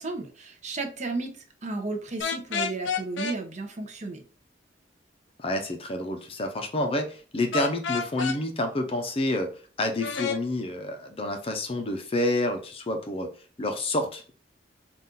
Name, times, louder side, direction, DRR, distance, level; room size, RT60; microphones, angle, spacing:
voice 1, 0.0-1.3 1.6-4.2, right 3 dB, 40° right, 5 dB, 0.6 m, -33 dB
sound 1, 2.2-3.4 7.5-8.4 10.0-10.4, left 5 dB, 85° left, 0.5 m, -29 dB
voice 2, 5.4-9.5 9.8-13.3 13.6-14.3, left 1 dB, 30° left, 5 dB, 0.6 m, -28 dB
4.0 x 2.4 x 3.7 m, 0.39 s
head